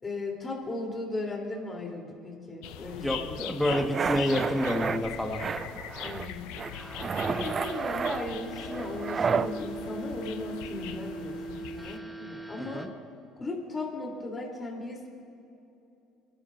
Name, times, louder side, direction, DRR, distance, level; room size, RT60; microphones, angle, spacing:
voice 1, 0.0-3.4 6.0-6.5 7.0-12.9 13.4-15.1, left 2 dB, 30° left, -1 dB, 3.2 m, -37 dB
sound 1, 2.6-12.0, left 10 dB, 80° left, 0.5 m, -41 dB
voice 2, 3.0-5.4 12.6-12.9, left 1 dB, 10° left, 3 dB, 1.5 m, -28 dB
sound 2, 3.7-5.0 5.4-6.3 6.6-9.5, right 6 dB, 40° right, 0.4 m, -31 dB
sound 3, 6.7-12.9, right 3 dB, 10° right, 1.0 m, -41 dB
27.5 x 10.5 x 2.6 m, 2.8 s
supercardioid pair, 70°, 0 cm